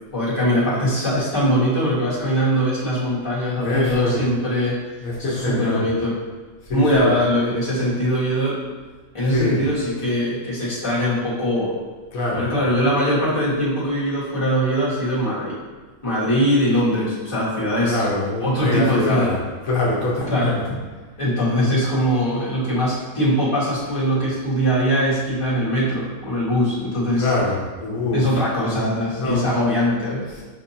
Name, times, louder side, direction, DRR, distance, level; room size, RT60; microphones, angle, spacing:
voice 1, 0.1-4.8 5.2-6.1 6.7-8.6 9.1-11.7 12.3-15.6 16.0-18.0 18.4-19.3 20.3-20.8 21.2-27.3 28.1-30.3, equal, 25° left, -9 dB, 1.4 m, -21 dB
voice 2, 3.6-4.2 5.0-5.8 6.6-7.1 9.3-9.7 12.1-12.5 17.8-20.6 27.0-28.4 29.2-29.5 30.3-30.4, left 2 dB, 80° left, -5 dB, 1.3 m, -24 dB
6.4 x 2.6 x 2.7 m, 1.4 s
omnidirectional pair, 1.4 m